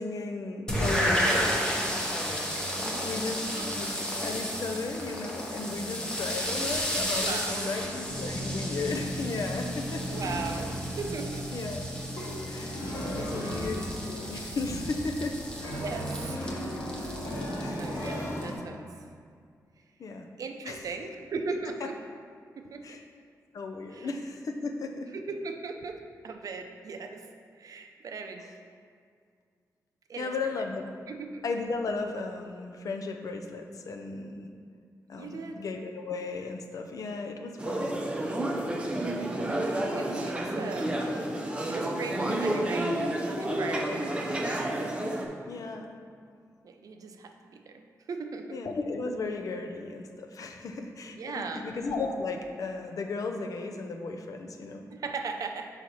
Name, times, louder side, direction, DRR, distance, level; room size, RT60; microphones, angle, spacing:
voice 1, 0.0-1.4 3.0-3.4 3.7-3.9 4.2-10.2 11.5-11.8 12.5-15.4 17.6-17.8 20.0-20.3 20.7-20.8 22.8-23.0 23.5-25.1 30.2-30.9 31.4-34.5 35.1-37.9 45.5-45.9 48.5-54.9, left 3 dB, 65° left, 4 dB, 0.6 m, -35 dB
sound 1, 0.7-18.6, equal, 10° left, 0.9 m, -33 dB
voice 2, 3.5-3.8 7.2-7.7 10.1-10.7 11.0-11.5 15.8-16.5 17.6-19.0 20.4-22.0 22.6-23.0 23.9-24.1 25.1-27.3 27.6-28.5 30.1-30.3 31.1-31.4 35.2-35.6 38.9-40.9 41.7-42.9 43.4-44.8 46.6-47.8 48.1-48.6 51.1-51.6 54.9-55.7, right 4 dB, 65° right, 5 dB, 0.5 m, -38 dB
sound 2, 8.1-18.6, equal, 80° left, 1.6 m, -36 dB
sound 3, 37.6-45.2, right 1 dB, 15° right, 0.6 m, -30 dB
6.0 x 4.9 x 4.1 m, 2.1 s
wide cardioid pair, 145°, 6 cm